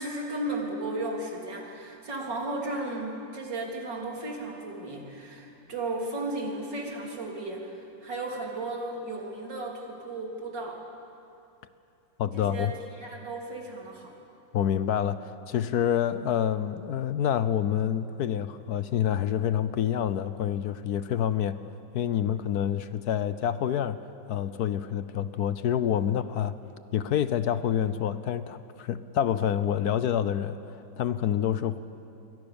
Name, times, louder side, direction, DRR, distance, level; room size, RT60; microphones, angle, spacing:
voice 1, 0.0-10.8 12.3-12.7 13.0-14.1, right 2 dB, 70° right, -1 dB, 4.2 m, -35 dB
voice 2, 12.2-12.7 14.5-21.6 21.9-24.0 24.3-26.6 26.9-31.8, left 9 dB, 65° left, 13 dB, 1.1 m, -27 dB
27.5 x 23.5 x 7.0 m, 2.6 s
omnidirectional pair, 2.0 m